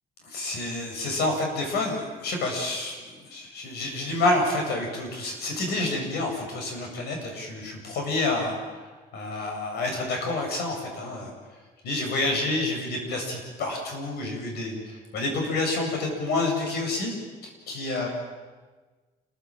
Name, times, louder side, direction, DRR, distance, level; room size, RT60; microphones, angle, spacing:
voice 1, 0.2-8.6 9.1-11.3 11.8-17.1 17.7-18.1, left 2 dB, 75° left, 2 dB, 7.7 m, -28 dB
29.0 x 15.0 x 9.0 m, 1.3 s
cardioid pair, 110°, 17 cm